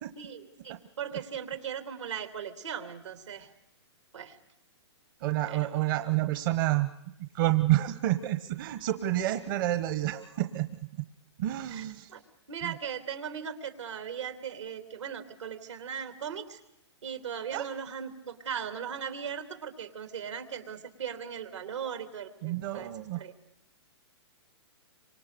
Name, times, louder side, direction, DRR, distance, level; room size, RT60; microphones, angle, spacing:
voice 1, 0.2-3.5 4.1-4.4 5.4-5.8 11.7-11.8 12.1-12.2 12.5-16.6 17.0-22.9 23.1-23.3, right 8 dB, 85° right, 7 dB, 3.2 m, -38 dB
voice 2, 5.2-6.9 7.2-10.7 11.4-12.1 12.6-12.8 17.5-17.7 22.4-23.2, right 15 dB, 50° right, 9 dB, 1.1 m, -29 dB
27.5 x 25.5 x 6.8 m, 0.81 s
hypercardioid pair, 135°, 15 cm